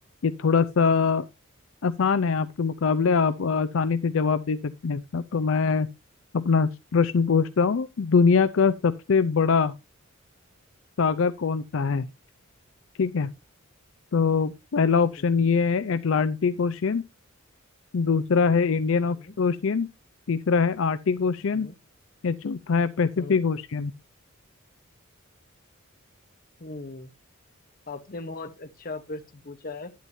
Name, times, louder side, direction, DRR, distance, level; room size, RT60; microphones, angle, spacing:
voice 1, 0.2-1.3 1.8-5.9 6.3-9.7 11.0-12.1 13.0-13.3 14.1-17.0 17.9-19.9 20.3-21.7 22.2-23.9, left 5 dB, 65° left, 0.5 m, -23 dB
voice 2, 26.6-27.1 27.9-29.9, left 3 dB, 45° left, 0.9 m, -38 dB
11.5 x 9.2 x 2.7 m
head